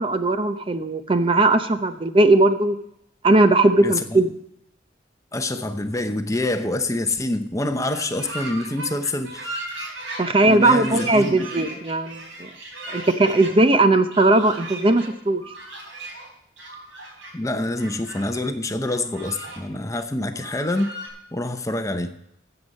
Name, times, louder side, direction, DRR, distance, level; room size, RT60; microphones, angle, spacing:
voice 1, 0.0-2.8 3.2-4.3 10.2-12.2 12.9-15.4, right 2 dB, 30° right, 0.6 m, -18 dB
voice 2, 3.8-4.3 5.3-9.7 10.4-11.4 17.3-20.9 21.3-22.1, left 2 dB, 15° left, 0.7 m, -26 dB
sound 1, 7.9-13.5 14.1-15.1 15.4-16.3 16.6-17.3 17.8-18.4 18.8-19.6 19.9-20.0 20.3-21.1, right 2 dB, 85° right, 3.8 m, -37 dB
13.5 x 7.9 x 5.4 m
head